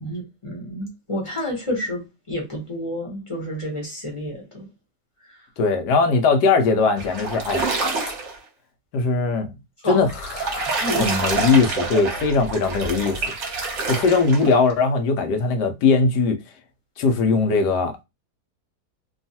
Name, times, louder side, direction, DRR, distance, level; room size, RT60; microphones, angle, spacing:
voice 1, 0.0-4.7 5.3-5.4 9.8-10.0 10.7-11.2, equal, 25° left, 0.7 m, -29 dB
voice 2, 5.6-7.7 8.9-9.5 9.8-13.3 13.9-16.4 17.0-18.0, left 4 dB, 85° left, 1.2 m, -20 dB
sound 1, 7.0-8.4 10.0-14.7, right 3 dB, 50° right, 1.0 m, -27 dB
3.0 x 2.3 x 2.7 m
omnidirectional pair, 1.8 m